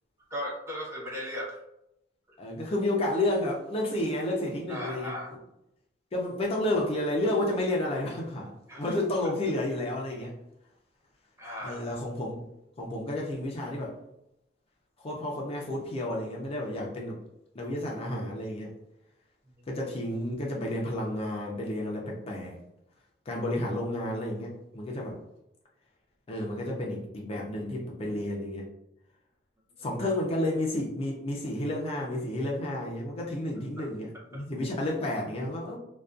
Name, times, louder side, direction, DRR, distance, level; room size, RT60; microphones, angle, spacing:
voice 1, 0.3-1.6 4.7-5.3 8.7-8.9 11.4-11.8, equal, 15° right, -4 dB, 0.7 m, -36 dB
voice 2, 2.4-5.2 6.1-10.4 11.6-12.4 12.8-14.0 15.0-17.2 17.5-18.7 19.7-22.6 23.3-25.2 26.3-28.7 29.8-35.8, left 1 dB, 30° left, -2 dB, 0.4 m, -31 dB
2.5 x 2.2 x 2.4 m, 0.82 s
head